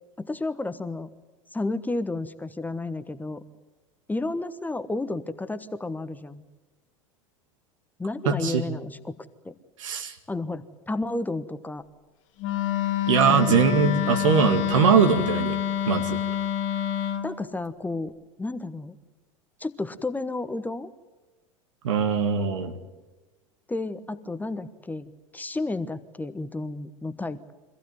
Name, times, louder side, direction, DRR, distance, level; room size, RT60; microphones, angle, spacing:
voice 1, 0.2-1.1 1.5-3.4 4.1-6.4 8.0-9.2 9.4-9.5 10.3-11.8 13.3-13.6 17.2-19.0 19.6-20.9 23.7-27.5, left 2 dB, 10° left, 11 dB, 1.1 m, -32 dB
voice 2, 8.3-8.6 9.8-10.1 13.1-15.6 15.9-16.2 21.8-22.7, right 6 dB, 70° right, 7 dB, 2.1 m, -21 dB
Wind instrument woodwind instrument, 12.4-17.3, left 10 dB, 55° left, 1.5 m, -27 dB
24.5 x 15.5 x 9.5 m, 1.1 s
hypercardioid pair, 80°, 17 cm